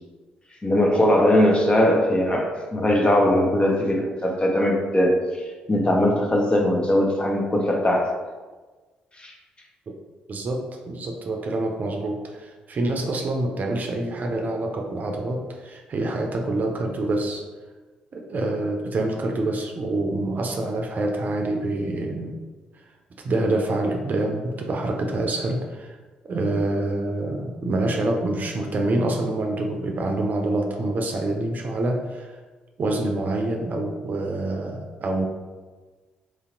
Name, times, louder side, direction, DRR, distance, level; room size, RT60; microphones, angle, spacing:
voice 1, 0.6-5.2 5.7-8.1 9.2-9.3, left 1 dB, 25° left, 0 dB, 0.9 m, -20 dB
voice 2, 10.3-17.4 18.1-22.3 23.2-26.0 26.2-32.4 32.8-35.3, right 2 dB, 50° right, 2 dB, 0.6 m, -26 dB
3.1 x 2.8 x 3.8 m, 1.3 s
hypercardioid pair, 45°, 4 cm